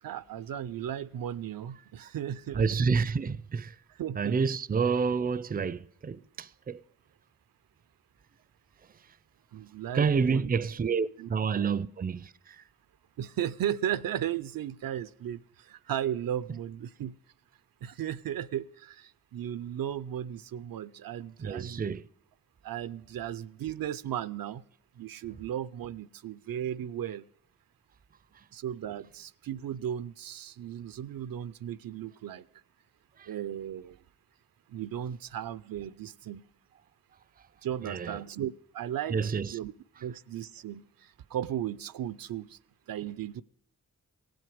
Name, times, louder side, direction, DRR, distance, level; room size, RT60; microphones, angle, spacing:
voice 1, 0.0-2.7 4.0-4.4 9.5-10.5 11.2-11.3 11.6-11.8 13.2-17.2 17.8-21.8 22.6-24.6 25.0-27.3 28.5-32.5 33.3-34.0 34.7-36.4 37.6-39.2 39.5-39.7 40.0-42.6 42.9-43.4, right 10 dB, 80° right, 0.5 m, -35 dB
voice 2, 2.5-3.8 4.1-6.8 9.9-12.6 21.4-22.0 33.2-33.3 37.8-38.2 39.1-39.6, right 5 dB, 25° right, 0.4 m, -29 dB
17.0 x 7.9 x 4.9 m
cardioid pair, 60°, 34 cm